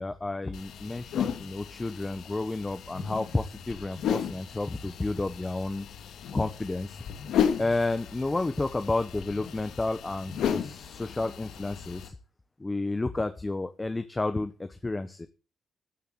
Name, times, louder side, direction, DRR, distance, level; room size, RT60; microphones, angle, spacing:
voice 1, 0.0-5.8 6.3-7.0 7.6-12.1 12.6-15.3, left 2 dB, 20° left, 9 dB, 1.1 m, -31 dB
sound 1, 0.5-12.1, left 8 dB, 85° left, 2.2 m, -34 dB
13.5 x 6.9 x 7.7 m, 0.35 s
cardioid pair, 100°, 0 cm